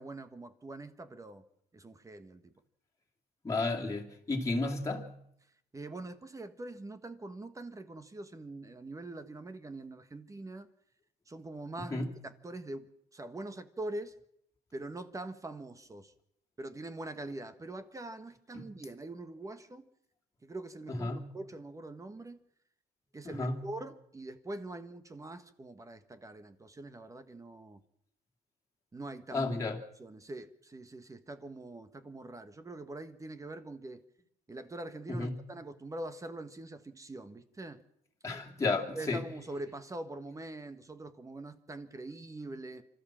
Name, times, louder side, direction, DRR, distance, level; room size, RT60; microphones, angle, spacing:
voice 1, 0.0-1.4 1.7-2.5 5.7-10.7 11.3-12.0 12.4-14.1 14.7-16.1 16.6-19.8 20.4-22.4 23.1-27.8 28.9-29.5 30.0-34.0 34.5-37.8 38.9-42.8, right 2 dB, 20° right, 1.4 m, -43 dB
voice 2, 3.4-5.1 11.9-12.1 18.5-18.7 20.9-21.3 23.2-23.6 29.3-29.8 35.1-35.4 38.2-39.3, left 3 dB, 20° left, 2.7 m, -33 dB
26.5 x 13.0 x 7.5 m
cardioid pair, 110°, 17 cm